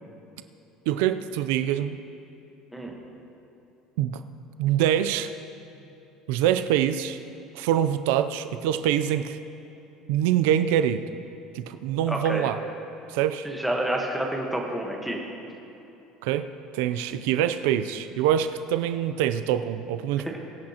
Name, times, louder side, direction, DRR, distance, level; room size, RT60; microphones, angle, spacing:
voice 1, 0.9-2.0 4.0-4.2 4.6-5.3 6.3-7.2 7.5-9.4 10.1-11.0 11.5-12.6 13.1-13.5 16.2-16.5 16.7-20.4, right 10 dB, 85° right, 9 dB, 0.5 m, -24 dB
voice 2, 12.1-12.5 13.4-15.2, right 1 dB, ahead, -1 dB, 1.2 m, -28 dB
23.0 x 8.8 x 2.9 m, 2.9 s
cardioid pair, 175°, 0 cm